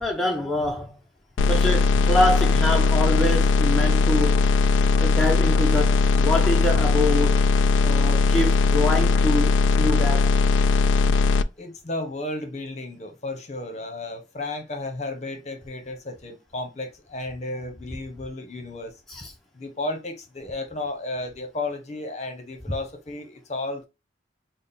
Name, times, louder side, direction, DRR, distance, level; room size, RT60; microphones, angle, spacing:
voice 1, 0.0-0.9 1.5-4.5 5.0-7.4 7.8-10.3 19.1-19.3, left 1 dB, ahead, 0.5 m, -25 dB
sound 1, 1.4-11.4, left 4 dB, 90° left, 0.3 m, -19 dB
voice 2, 11.6-18.9 19.5-23.8, left 2 dB, 40° left, 0.8 m, -33 dB
3.5 x 2.0 x 4.0 m
head